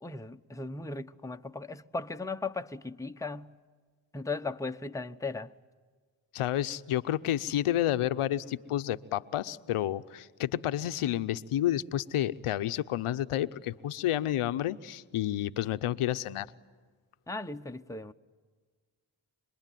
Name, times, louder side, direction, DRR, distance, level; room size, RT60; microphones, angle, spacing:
voice 1, 0.0-3.5 4.1-5.5 17.3-18.1, left 3 dB, 5° left, 0.9 m, -37 dB
voice 2, 6.3-16.5, left 12 dB, 80° left, 0.9 m, -30 dB
26.5 x 21.5 x 9.2 m
supercardioid pair, 45°, 50 cm